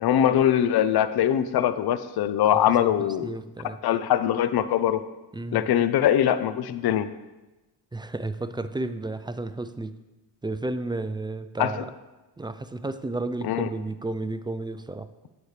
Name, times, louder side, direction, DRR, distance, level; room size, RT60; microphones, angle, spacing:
voice 1, 0.0-3.4 3.8-5.0 5.5-7.1 11.6-11.8 13.4-13.7, left 10 dB, 55° left, 12 dB, 0.6 m, -22 dB
voice 2, 2.5-2.9 3.2-3.8 5.3-5.7 7.9-9.9 10.4-11.9 12.4-15.1, right 2 dB, 10° right, 11 dB, 0.3 m, -32 dB
9.4 x 8.5 x 3.3 m, 1.1 s
cardioid pair, 85°, 45 cm